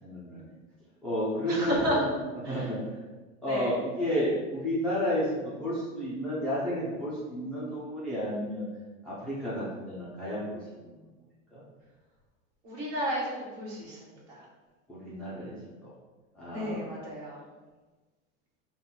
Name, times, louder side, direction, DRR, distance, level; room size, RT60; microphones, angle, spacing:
voice 1, 0.0-0.4 1.0-2.1 2.5-3.0 3.4-8.6 9.0-11.0 11.5-11.6 14.9-15.6 15.8-15.9 16.4-16.9, equal, ahead, -10 dB, 0.5 m, -32 dB
voice 2, 1.5-2.0 2.4-2.7 3.4-3.7 12.6-14.5 16.5-17.4, equal, 45° right, -4 dB, 1.4 m, -32 dB
3.8 x 2.3 x 3.9 m, 1.3 s
supercardioid pair, 145°, 37 cm